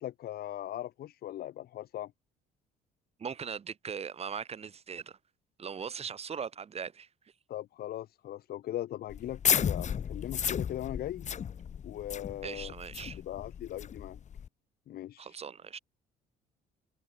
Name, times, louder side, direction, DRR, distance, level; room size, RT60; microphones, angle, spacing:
voice 1, 0.0-2.1 7.5-9.4 9.6-11.3 11.8-12.7 13.2-14.2 14.9-15.4, left 13 dB, 65° left, 3.7 m, -39 dB
voice 2, 3.2-5.2 5.6-7.1 12.4-13.2 15.2-15.8, right 6 dB, 35° right, 6.0 m, -39 dB
Laser two, 9.1-14.5, left 8 dB, 45° left, 4.6 m, -33 dB
cardioid pair, 110°, 17 cm